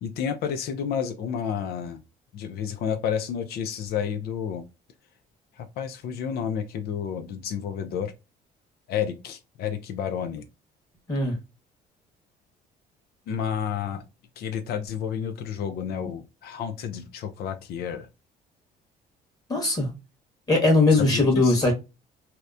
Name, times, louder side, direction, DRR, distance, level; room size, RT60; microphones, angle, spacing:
voice 1, 0.0-2.0 2.3-4.6 5.6-8.1 8.9-10.4 13.3-14.0 14.4-18.1 21.0-21.7, left 8 dB, 70° left, 0.4 m, -30 dB
voice 2, 19.5-19.9 20.5-21.7, left 2 dB, 20° left, 1.2 m, -20 dB
2.8 x 2.1 x 2.3 m
cardioid pair, 110°, 17 cm